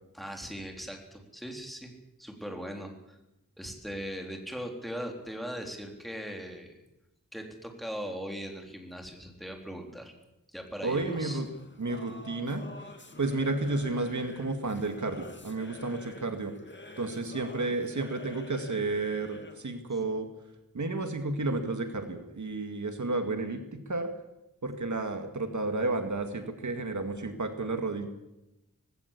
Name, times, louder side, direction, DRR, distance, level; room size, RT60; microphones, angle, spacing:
voice 1, 0.1-1.9 2.2-3.2 3.6-6.7 7.3-10.1 10.5-11.4, equal, ahead, 2 dB, 3.8 m, -39 dB
Singing / Musical instrument, 10.8-19.7, left 2 dB, 35° left, 2.4 m, -48 dB
voice 2, 10.8-11.5 11.8-12.6 13.2-16.5 17.0-20.3 20.7-24.1 24.6-28.1, right 3 dB, 60° right, 6 dB, 2.1 m, -32 dB
19.0 x 16.5 x 8.5 m, 0.92 s
wide cardioid pair, 100°, 33 cm